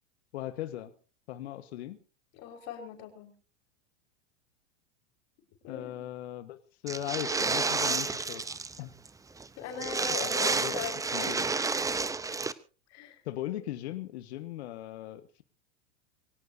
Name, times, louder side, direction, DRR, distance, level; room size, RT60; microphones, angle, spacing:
voice 1, 0.3-0.9 1.3-2.0 5.7-8.4 8.8-8.9 10.1-10.7 11.1-11.5 13.2-15.4, left 13 dB, 70° left, 11 dB, 1.6 m, -38 dB
voice 2, 2.3-3.3 5.6-6.0 9.6-11.4 12.9-13.2, left 6 dB, 50° left, 4 dB, 5.4 m, -40 dB
sound 1, 6.9-8.8 9.1-9.2 9.4-9.5 9.8-12.5, right 4 dB, 10° right, 0.8 m, -30 dB
23.5 x 17.5 x 2.8 m, 0.36 s
hypercardioid pair, 105°, 34 cm